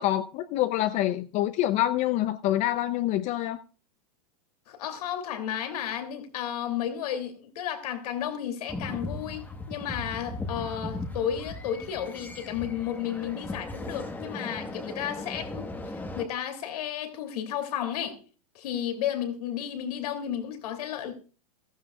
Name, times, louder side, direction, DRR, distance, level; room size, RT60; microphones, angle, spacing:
voice 1, 0.0-3.6, left 14 dB, 35° left, 0.6 m, -26 dB
voice 2, 4.7-15.7 16.2-18.2 18.5-21.1, left 10 dB, 75° left, 2.7 m, -33 dB
sound 1, 8.7-16.2, left 2 dB, 10° left, 1.3 m, -37 dB
14.5 x 13.5 x 2.3 m
supercardioid pair, 130°, 20 cm